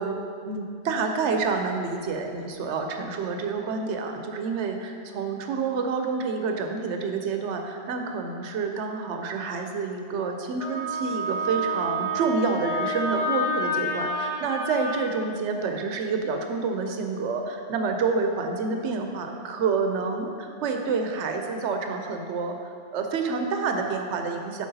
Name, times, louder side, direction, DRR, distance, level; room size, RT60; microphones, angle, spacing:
voice 1, 0.0-24.7, right 4 dB, 80° right, 4 dB, 0.9 m, -28 dB
Wind instrument woodwind instrument, 10.6-15.0, equal, 5° right, 1.1 m, -29 dB
7.6 x 4.9 x 2.7 m, 2.3 s
omnidirectional pair, 1.2 m